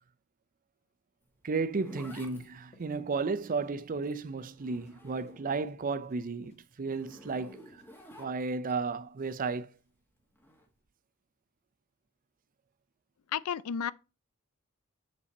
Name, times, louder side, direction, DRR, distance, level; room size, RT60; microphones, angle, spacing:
Zipper (clothing), 1.2-5.7 6.1-8.7 10.3-10.7, left 1 dB, 10° left, 1.3 m, -53 dB
voice 1, 1.4-7.8 8.2-9.7, right 4 dB, 40° right, 0.5 m, -33 dB
sound 1, 1.5-8.2, left 2 dB, 30° left, 1.4 m, -61 dB
voice 2, 13.3-13.9, left 8 dB, 75° left, 0.4 m, -32 dB
6.9 x 5.0 x 4.0 m
head